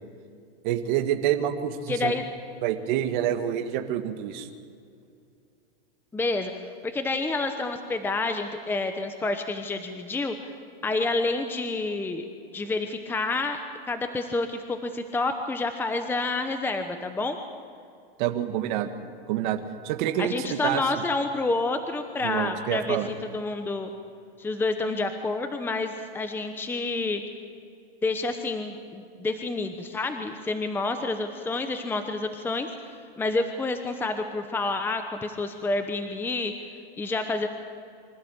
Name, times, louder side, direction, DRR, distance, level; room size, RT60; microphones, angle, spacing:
voice 1, 0.6-2.1 2.6-4.5 18.2-18.9 19.3-20.8 22.2-23.1, right 11 dB, 55° right, 6 dB, 1.9 m, -27 dB
voice 2, 1.9-2.2 6.1-10.5 10.8-12.2 12.5-13.6 13.9-17.4 20.2-23.0 23.3-23.9 24.4-27.2 28.0-36.7 37.0-37.5, left 3 dB, 5° left, 7 dB, 0.9 m, -29 dB
25.0 x 15.5 x 8.8 m, 2.4 s
supercardioid pair, 150°, 29 cm